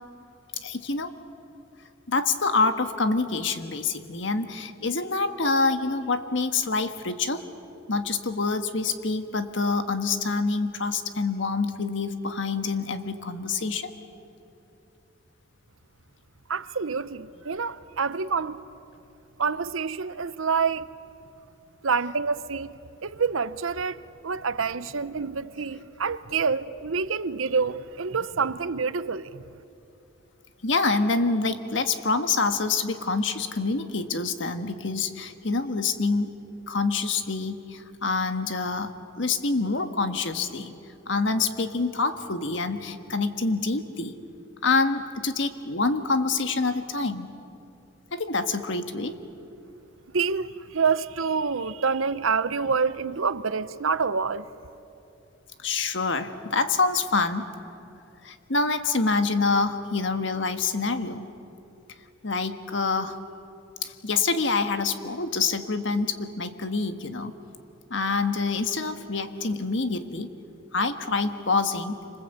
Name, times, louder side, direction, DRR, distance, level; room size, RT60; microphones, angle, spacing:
voice 1, 0.6-1.1 2.1-7.4 7.9-13.9 30.6-36.3 36.7-40.7 41.1-44.1 44.6-47.3 48.1-49.2 55.6-57.5 58.2-61.3 62.2-63.2 63.8-67.3 67.9-70.3 70.7-72.0, left 4 dB, 65° left, 1.5 m, -26 dB
voice 2, 16.5-18.6 19.4-20.9 21.8-24.0 24.2-29.4 50.1-54.5, right 5 dB, 85° right, 0.8 m, -27 dB
28.0 x 26.0 x 8.2 m
head